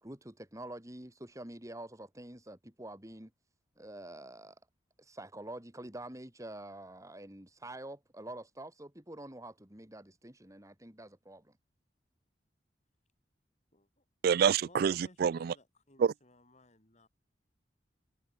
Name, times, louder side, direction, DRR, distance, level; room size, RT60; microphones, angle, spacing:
voice 1, 0.0-3.3 3.8-4.6 5.0-11.6, right 1 dB, 20° right, 3.1 m, -47 dB
voice 2, 13.7-14.0 14.6-17.1, left 2 dB, 40° left, 5.7 m, -61 dB
voice 3, 14.2-15.5 16.0-16.1, right 7 dB, 55° right, 0.3 m, -27 dB
head